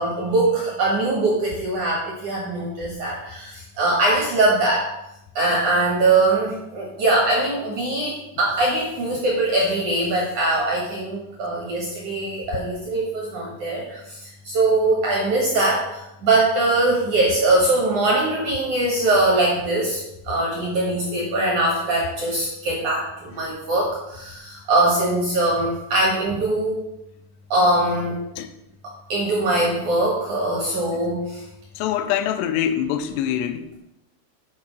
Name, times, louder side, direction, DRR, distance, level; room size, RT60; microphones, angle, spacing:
voice 1, 0.0-4.9 5.4-26.8 27.5-28.2 29.1-31.4, right 2 dB, 65° right, -3 dB, 1.9 m, -22 dB
voice 2, 31.8-33.7, left 10 dB, 85° left, 8 dB, 2.6 m, -24 dB
8.4 x 4.8 x 6.1 m, 0.87 s
omnidirectional pair, 5.4 m